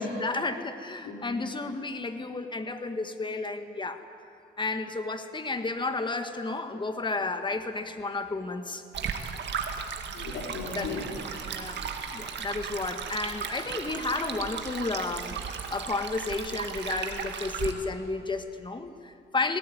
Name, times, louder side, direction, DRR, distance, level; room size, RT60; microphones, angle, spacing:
voice 1, 0.0-4.0 4.6-8.8 10.7-10.9 11.5-11.8 12.1-19.6, left 3 dB, 25° left, 8 dB, 1.8 m, -32 dB
voice 2, 1.0-1.5 10.1-11.9, left 4 dB, 80° left, 0 dB, 4.5 m, -37 dB
Stream, 8.9-17.7, right 6 dB, 60° right, 2.1 m, -35 dB
18.5 x 18.5 x 9.4 m, 2.5 s
cardioid pair, 90°, 20 cm